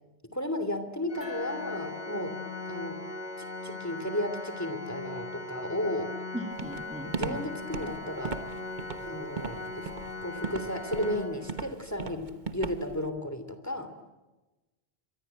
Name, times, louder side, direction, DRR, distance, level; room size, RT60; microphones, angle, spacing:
voice 1, 0.3-2.4 2.7-3.0 3.4-6.2 7.0-8.4 9.0-9.9 10.2-13.9, left 1 dB, 15° left, 9 dB, 3.0 m, -34 dB
Organ, 1.1-11.9, left 2 dB, 45° left, 1.9 m, -39 dB
sound 1, 1.2-4.4, left 7 dB, 65° left, 3.5 m, -45 dB
voice 2, 6.3-7.4, right 1 dB, 5° right, 3 dB, 2.2 m, -38 dB
Walk footsteps, 6.6-13.1, right 5 dB, 50° right, 1.4 m, -37 dB
26.0 x 24.0 x 9.0 m, 1.1 s
omnidirectional pair, 1.0 m